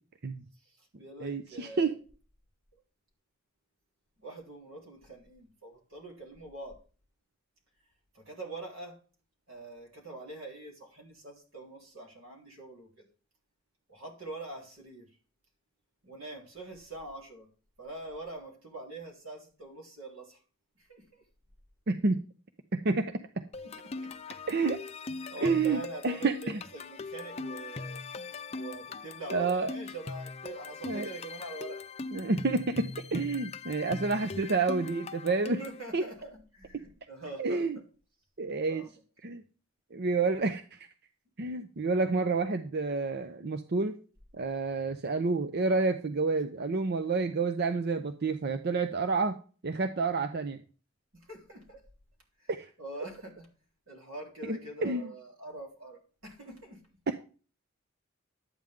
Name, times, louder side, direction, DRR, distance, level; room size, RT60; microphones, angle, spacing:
voice 1, 0.6-2.0 2.7-2.8 4.2-6.8 8.1-9.0 9.5-13.1 13.9-15.2 16.0-17.5 17.8-20.4 20.8-21.2 23.6-24.2 25.3-28.0 28.5-31.8 35.6-37.8 38.7-38.9 51.1-51.8 52.4-52.5 52.8-53.5 53.9-56.8, right 2 dB, 75° right, 3.5 m, -44 dB
voice 2, 1.2-1.9 21.9-22.2 22.7-23.4 24.5-24.8 25.4-25.8 26.0-26.3 29.3-29.7 30.9-31.1 32.1-35.6 35.9-36.0 37.4-37.8 38.4-38.8 39.2-39.4 39.9-40.6 41.4-44.0 44.3-49.4 49.6-50.6 52.5-52.7 54.5-55.1, right 3 dB, 50° right, 0.6 m, -29 dB
sound 1, 23.5-35.8, left 3 dB, 30° left, 0.5 m, -41 dB
11.5 x 9.0 x 3.6 m
head